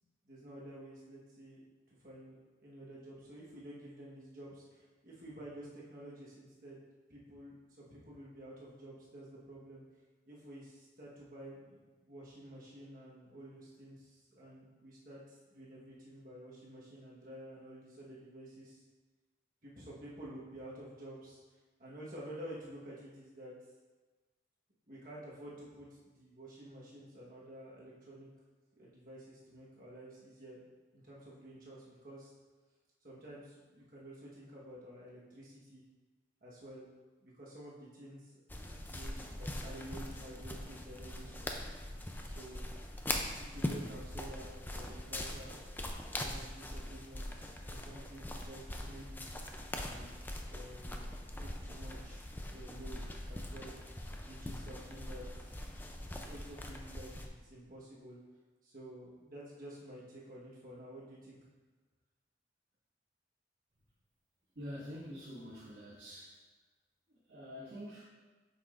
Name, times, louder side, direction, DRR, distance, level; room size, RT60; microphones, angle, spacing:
voice 1, 0.2-1.6 1.9-6.8 7.1-9.8 10.3-18.8 19.6-21.4 21.8-23.5 24.9-28.3 28.8-32.3 33.0-35.8 36.4-36.9 37.2-38.3 38.8-41.7 42.2-42.6 43.4-45.5 46.1-49.3 49.8-51.1 51.4-53.7 54.2-55.6 55.9-58.2 58.6-61.4, right 1 dB, 50° right, -6 dB, 1.3 m, -51 dB
sound 1, 38.5-57.3, left 1 dB, 10° left, 0.4 m, -42 dB
voice 2, 64.6-66.4 67.1-68.0, equal, 70° right, -12 dB, 1.9 m, -46 dB
8.1 x 5.9 x 2.5 m, 1.3 s
head